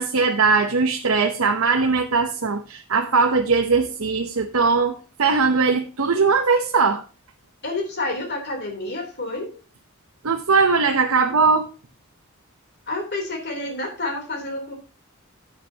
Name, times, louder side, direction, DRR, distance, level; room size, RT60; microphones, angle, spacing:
voice 1, 0.0-7.0 10.2-11.7, right 4 dB, 75° right, 4 dB, 0.8 m, -20 dB
voice 2, 7.6-9.5 12.9-14.7, left 2 dB, 50° left, 2 dB, 3.3 m, -29 dB
12.5 x 8.2 x 2.8 m, 0.34 s
head